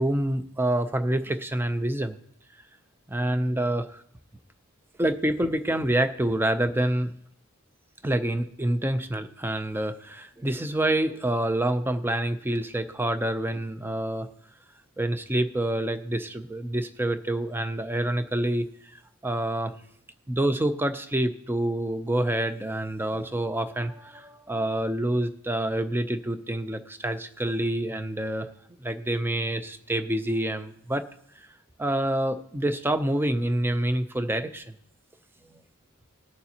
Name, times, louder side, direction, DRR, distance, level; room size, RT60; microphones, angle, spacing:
voice 1, 0.0-2.2 3.1-4.0 5.0-7.1 8.0-14.3 15.0-18.7 19.2-19.7 20.3-28.5 28.8-31.1 31.8-34.7 35.5-35.6, right 1 dB, 10° right, 10 dB, 0.5 m, -27 dB
20.0 x 6.8 x 2.8 m, 0.67 s
head